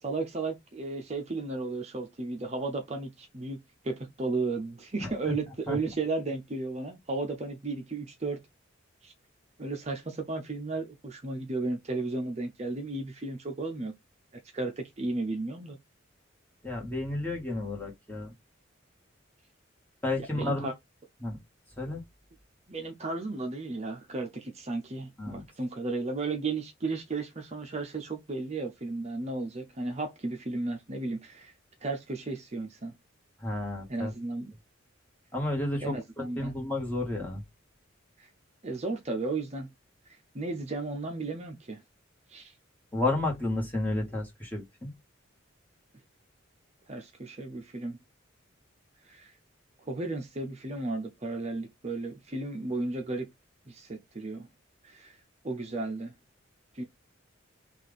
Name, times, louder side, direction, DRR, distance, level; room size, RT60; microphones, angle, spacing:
voice 1, 0.0-8.4 9.0-9.1 9.6-13.9 14.5-15.8 20.2-20.7 22.7-31.5 31.8-32.9 33.9-34.5 35.8-36.5 38.2-38.3 38.6-39.7 40.1-41.8 42.3-42.5 46.9-48.0 49.1-49.3 49.8-53.3 53.7-54.5 54.8-55.2 55.4-56.1 56.7-56.8, right 3 dB, 30° right, 0.7 m, -34 dB
voice 2, 5.0-5.3 5.7-5.8 16.6-18.3 20.0-20.7 21.2-21.4 21.8-22.0 25.2-25.4 33.4-34.1 35.3-37.4 42.9-44.9, left 2 dB, 10° left, 1.7 m, -32 dB
6.0 x 2.5 x 3.5 m
head